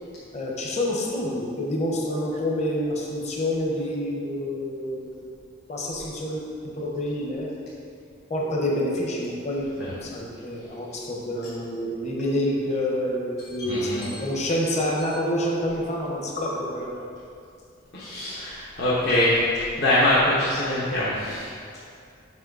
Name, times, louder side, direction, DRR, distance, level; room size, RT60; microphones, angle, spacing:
voice 1, 0.3-5.2 5.7-7.5 8.3-16.9, left 1 dB, 35° left, -2 dB, 1.1 m, -28 dB
voice 2, 13.6-14.2 17.9-21.5, left 1 dB, 60° left, -9 dB, 1.2 m, -23 dB
7.6 x 6.1 x 4.0 m, 2.4 s
head